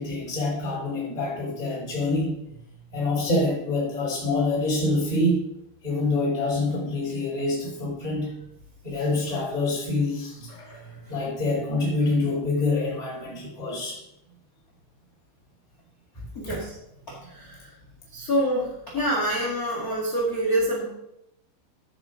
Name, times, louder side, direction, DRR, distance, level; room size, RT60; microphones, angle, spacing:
voice 1, 0.0-2.4 2.9-5.5 5.8-8.3 8.8-10.7 11.1-14.0 16.2-16.3 16.5-16.6, left 2 dB, 10° left, -4 dB, 3.5 m, -26 dB
voice 2, 10.6-11.2 16.3-16.7 17.1-17.7 18.1-20.8, equal, 55° left, -3 dB, 0.9 m, -27 dB
15.0 x 5.1 x 5.1 m, 0.83 s
omnidirectional pair, 5.5 m